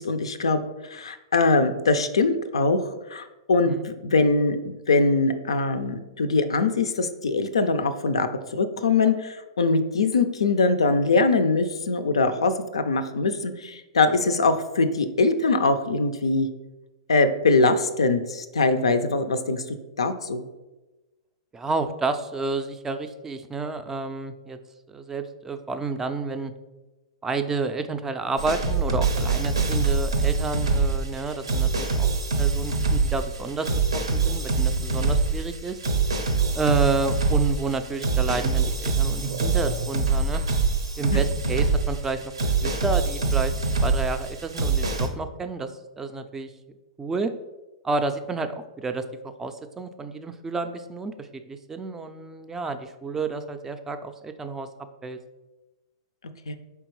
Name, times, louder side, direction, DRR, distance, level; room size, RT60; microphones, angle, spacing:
voice 1, 0.0-16.5 17.1-20.4 41.1-41.2 56.5-56.6, left 3 dB, 90° left, 10 dB, 0.4 m, -22 dB
voice 2, 21.5-24.6 24.9-26.5 27.2-32.1 32.4-33.7 33.9-35.8 36.5-40.4 41.0-43.5 43.8-46.5 47.0-47.3 47.8-55.2, right 4 dB, 15° right, 8 dB, 0.3 m, -30 dB
sound 1, 28.4-45.1, right 4 dB, 90° right, 0.6 m, -24 dB
4.4 x 3.4 x 3.1 m, 1.1 s
hypercardioid pair, 115°, 3 cm